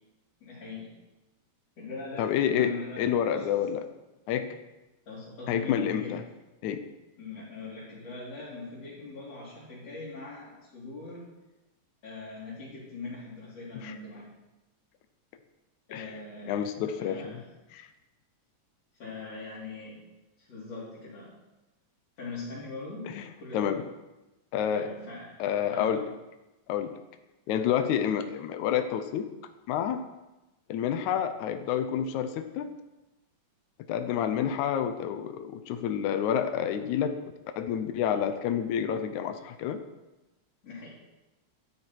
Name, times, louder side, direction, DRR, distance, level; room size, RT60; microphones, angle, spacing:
voice 1, 0.4-0.9 1.8-3.5 5.1-6.2 7.2-11.2 12.0-14.3 15.9-16.7 17.0-17.5 18.9-20.0 20.4-21.3 22.2-23.1 23.4-23.8 24.7-25.3 25.7-26.0 40.6-40.9, left 3 dB, 60° left, -9 dB, 4.7 m, -41 dB
voice 2, 2.2-2.7 3.0-3.8 4.3-4.5 5.5-6.2 6.6-6.8 13.8-14.0 15.9-16.1 16.5-17.4 17.7-17.9 23.1-23.2 23.5-23.8 24.5-24.9 25.4-26.0 26.7-26.9 27.5-29.3 29.7-30.1 30.7-32.7 33.9-37.2 37.6-39.8, left 9 dB, 85° left, 8 dB, 2.3 m, -28 dB
13.5 x 12.5 x 4.6 m, 1.0 s
omnidirectional pair, 3.3 m